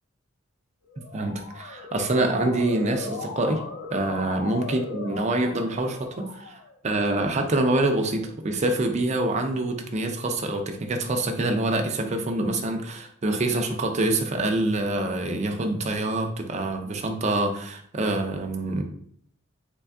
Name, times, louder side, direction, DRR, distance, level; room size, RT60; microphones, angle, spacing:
Motor vehicle (road) / Siren, 0.9-6.7, left 4 dB, 60° left, 0.4 m, -38 dB
voice 1, 1.1-3.6 3.9-6.6 6.8-18.8, right 2 dB, 35° right, 5 dB, 0.4 m, -26 dB
3.4 x 2.2 x 3.5 m, 0.62 s
head